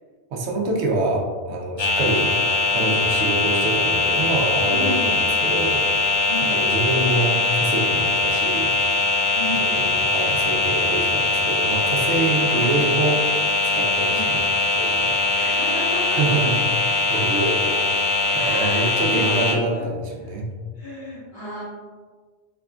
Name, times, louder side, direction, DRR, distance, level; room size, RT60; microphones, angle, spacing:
voice 1, 0.3-2.3 2.7-5.8 6.5-8.7 9.5-13.2 13.6-14.5 14.7-15.1 16.2-16.5 17.1-20.5, right 2 dB, 90° right, 1 dB, 0.9 m, -26 dB
Electric Hair Clipper, 1.8-19.5, left 3 dB, 30° left, 0.5 m, -21 dB
voice 2, 4.7-5.1 6.3-7.1 9.3-10.0 12.3-12.8 14.1-14.4 15.3-16.6 17.1-17.8 18.3-19.9 20.2-20.3 20.8-21.6, equal, 50° left, -10 dB, 1.8 m, -33 dB
3.5 x 3.4 x 2.4 m, 1.5 s
omnidirectional pair, 1.1 m